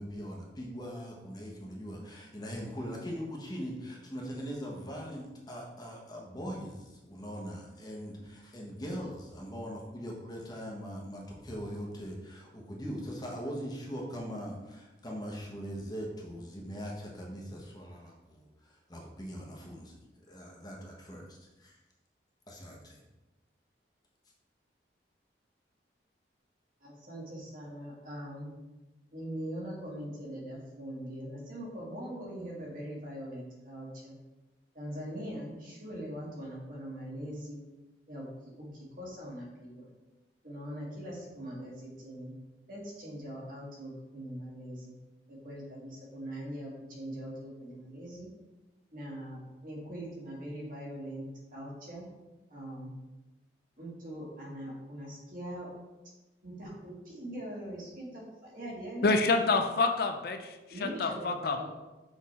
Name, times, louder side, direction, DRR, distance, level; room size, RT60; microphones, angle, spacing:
voice 1, 0.0-21.8 22.5-23.0, equal, 20° left, -2 dB, 1.0 m, -41 dB
voice 2, 26.8-28.5 29.1-34.2 34.7-37.6 38.1-39.9 40.4-42.3 42.7-45.0 45.3-48.3 48.9-52.1 52.5-52.9 53.8-55.7 56.4-59.4 60.7-61.7, equal, 50° right, -4 dB, 1.8 m, -42 dB
voice 3, 59.0-60.5 60.8-61.6, left 3 dB, 55° left, 6 dB, 0.5 m, -27 dB
6.3 x 3.5 x 4.2 m, 1.1 s
head